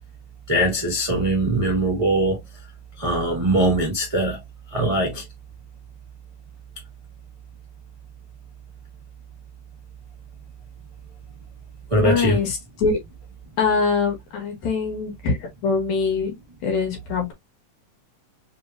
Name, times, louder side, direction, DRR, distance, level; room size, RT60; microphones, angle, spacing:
voice 1, 0.5-2.4 3.0-4.4 4.7-5.2 11.9-12.4, right 1 dB, 25° right, 0.6 m, -21 dB
voice 2, 12.0-12.5 12.8-13.0 13.6-15.4 15.6-16.3 16.6-17.3, left 5 dB, 65° left, 2.5 m, -23 dB
5.3 x 2.9 x 2.4 m
omnidirectional pair, 3.4 m